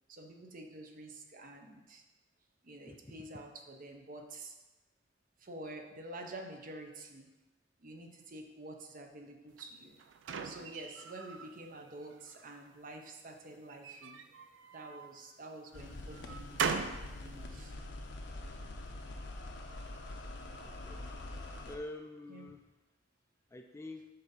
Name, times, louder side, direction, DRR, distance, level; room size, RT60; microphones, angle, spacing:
voice 1, 0.1-2.0 2.6-4.6 5.4-7.3 7.8-10.0 10.4-14.2 14.7-17.7 22.3-22.5, right 2 dB, 45° right, 3 dB, 0.7 m, -48 dB
voice 2, 2.9-3.2 20.6-21.0 21.7-22.6 23.5-24.1, left 2 dB, 15° left, 4 dB, 0.3 m, -46 dB
sound 1, 9.6-11.5 12.0-12.7 13.7-15.2 15.7-17.1, right 5 dB, 75° right, 0.4 m, -39 dB
sound 2, 15.7-21.8, left 2 dB, 65° left, 0.7 m, -45 dB
7.7 x 2.7 x 5.5 m, 1.1 s
head